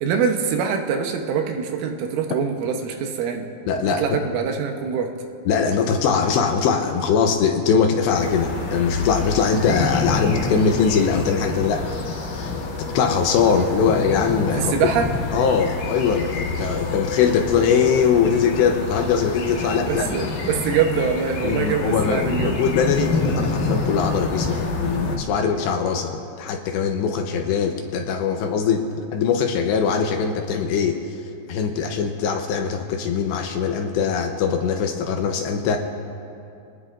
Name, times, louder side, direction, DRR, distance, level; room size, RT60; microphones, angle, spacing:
voice 1, 0.0-3.5 4.0-5.1 14.5-15.1 19.6-22.6, right 6 dB, 80° right, 3 dB, 3.5 m, -24 dB
voice 2, 3.7-4.0 5.5-11.8 12.3-12.5 12.8-14.7 15.3-20.3 21.4-26.1 26.4-31.0 31.5-35.8, left 6 dB, 80° left, 4 dB, 2.7 m, -21 dB
sound 1, 8.1-25.2, left 3 dB, 60° left, 2.4 m, -27 dB
27.5 x 19.0 x 2.5 m, 2.6 s
omnidirectional pair, 5.7 m